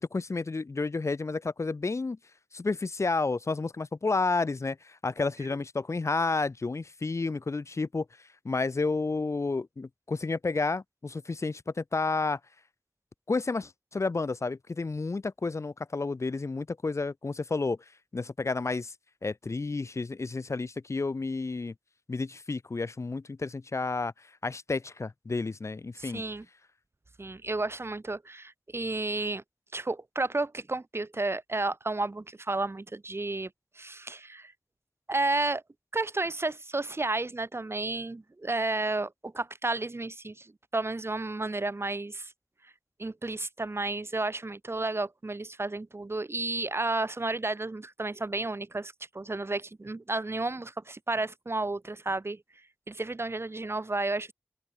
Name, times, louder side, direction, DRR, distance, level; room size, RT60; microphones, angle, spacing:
voice 1, 0.0-2.2 2.5-12.4 13.3-17.8 18.1-18.9 19.2-21.7 22.1-26.2, left 3 dB, 80° left, 2.0 m, -31 dB
voice 2, 26.0-26.4 27.2-29.4 29.7-33.5 33.7-34.5 35.1-35.6 35.9-42.3 43.0-52.4 52.9-54.3, right 2 dB, 60° right, 5.0 m, -32 dB
open air
wide cardioid pair, 40°, 5 cm